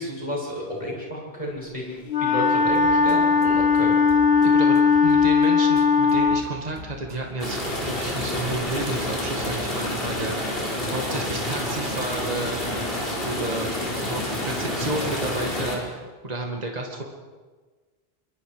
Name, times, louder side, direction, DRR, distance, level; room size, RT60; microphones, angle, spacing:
voice 1, 0.0-4.0, left 1 dB, 35° left, -4 dB, 8.1 m, -32 dB
Wind instrument woodwind instrument, 2.1-6.5, left 5 dB, 85° left, 1.4 m, -19 dB
sound 1, 2.7-9.5, right 2 dB, 80° right, 3.0 m, -43 dB
voice 2, 4.4-10.4 10.9-12.6 13.2-17.0, right 2 dB, 40° right, 1 dB, 2.1 m, -31 dB
sound 2, 7.4-15.8, left 1 dB, 65° left, 5.2 m, -28 dB
25.5 x 24.0 x 5.0 m, 1.4 s
omnidirectional pair, 1.0 m